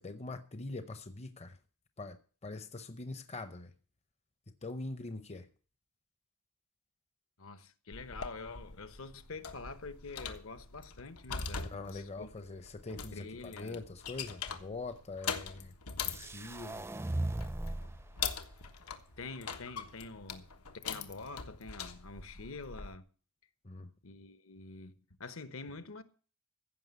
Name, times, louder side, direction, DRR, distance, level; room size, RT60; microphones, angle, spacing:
voice 1, 0.0-1.6 2.0-3.7 4.6-5.5 11.6-15.7 16.0-16.9 23.6-23.9, left 2 dB, 30° left, 0.7 m, -43 dB
voice 2, 7.4-12.3 13.1-13.9 16.0-16.4 16.7-16.9 17.2-17.9 18.8-18.9 19.2-20.5 20.8-23.0 24.0-26.0, left 3 dB, 65° left, 1.1 m, -47 dB
sound 1, 7.9-23.0, left 6 dB, 85° left, 1.3 m, -43 dB
sound 2, 16.1-18.0, right 1 dB, 10° right, 0.5 m, -37 dB
15.5 x 6.0 x 8.2 m
head